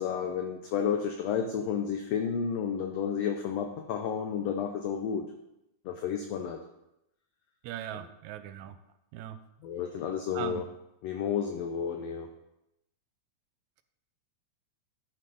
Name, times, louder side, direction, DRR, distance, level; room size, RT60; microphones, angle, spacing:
voice 1, 0.0-5.2 5.8-6.6 7.9-8.1 9.6-10.7 11.0-12.3, left 7 dB, 75° left, 4 dB, 1.6 m, -31 dB
voice 2, 7.6-8.8 9.1-9.4 10.3-10.6, right 11 dB, 80° right, 11 dB, 1.9 m, -39 dB
11.5 x 6.7 x 3.9 m, 0.87 s
omnidirectional pair, 3.5 m